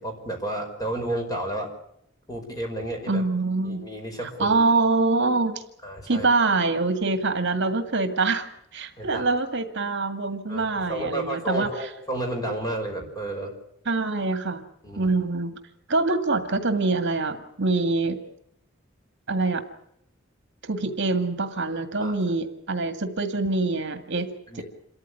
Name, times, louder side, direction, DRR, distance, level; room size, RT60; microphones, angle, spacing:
voice 1, 0.0-1.7 2.3-3.2 3.6-4.6 5.8-6.3 9.0-9.3 10.5-13.5 14.8-15.1 22.0-22.1 24.5-24.6, right 1 dB, 20° left, 3 dB, 5.4 m, -31 dB
voice 2, 3.1-3.9 4.4-5.6 6.1-8.5 8.7-11.9 13.9-14.7 15.0-15.6 15.9-18.2 19.3-19.6 20.6-24.6, right 3 dB, 60° right, 8 dB, 2.0 m, -25 dB
27.5 x 14.0 x 9.7 m, 0.74 s
head